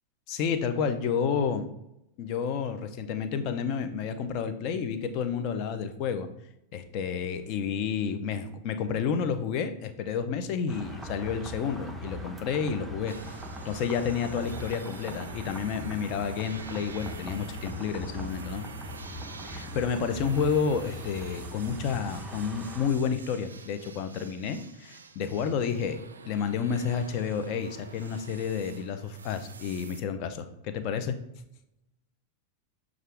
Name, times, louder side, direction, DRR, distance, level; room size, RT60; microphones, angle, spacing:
voice 1, 0.3-1.7 2.2-6.3 6.7-13.4 13.6-18.7 19.4-26.0 26.3-31.2, left 6 dB, 40° left, 9 dB, 0.5 m, -30 dB
sound 1, 10.7-22.9, equal, 5° right, 0.6 m, -41 dB
sound 2, 13.1-30.0, right 5 dB, 70° right, 0.3 m, -47 dB
6.4 x 2.4 x 3.4 m, 0.85 s
figure-of-eight pair, 90°, 0 cm